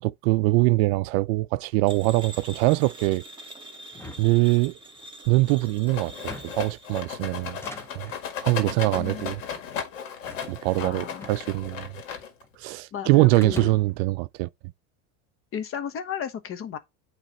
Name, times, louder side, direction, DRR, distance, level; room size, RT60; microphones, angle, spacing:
voice 1, 0.0-3.2 4.2-4.8 5.3-7.6 8.0-8.1 8.4-9.4 10.5-11.9 12.6-14.5, right 21 dB, 55° right, 0.5 m, -23 dB
sound 1, 1.9-7.0, right 1 dB, 15° right, 2.5 m, -45 dB
sound 2, 3.9-5.1 6.1-6.7 7.4-8.2 9.0-9.4 10.3-11.8 12.0-12.8 13.3-14.1, left 1 dB, 5° left, 0.9 m, -43 dB
Rattle, 5.9-12.5, left 7 dB, 80° left, 2.0 m, -36 dB
voice 2, 8.9-9.5 10.8-11.3 12.9-13.7 15.5-16.8, left 8 dB, 35° left, 1.1 m, -34 dB
9.0 x 3.3 x 4.1 m
supercardioid pair, 115°, 38 cm